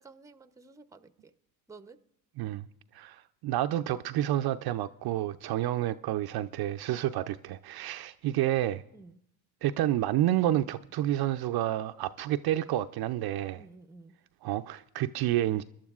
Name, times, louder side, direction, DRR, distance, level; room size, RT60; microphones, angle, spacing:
voice 1, 0.0-1.3 1.7-2.0 8.9-9.2 13.5-14.2, right 3 dB, 5° right, 0.6 m, -52 dB
voice 2, 2.4-2.7 2.9-8.8 9.6-13.6 14.4-15.6, right 13 dB, 50° right, 0.5 m, -29 dB
24.5 x 11.5 x 2.4 m
supercardioid pair, 80°, 49 cm